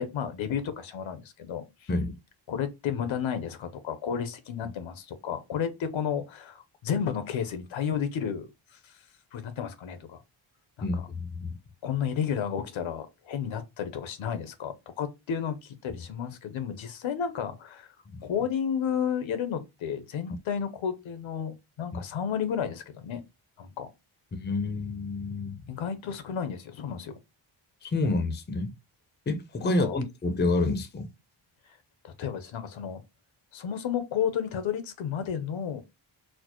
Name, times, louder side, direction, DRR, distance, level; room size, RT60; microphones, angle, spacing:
voice 1, 0.0-1.9 2.5-9.0 9.3-10.2 10.8-11.1 11.8-17.9 18.2-23.2 23.6-23.9 25.7-27.1 29.6-30.0 31.7-31.8 32.0-33.0 33.5-35.8, left 8 dB, 70° left, 0.7 m, -32 dB
voice 2, 10.8-11.5 24.3-25.6 27.8-28.7 29.3-31.1, left 2 dB, 20° left, 0.5 m, -28 dB
4.3 x 2.0 x 2.9 m
cardioid pair, 100°, 49 cm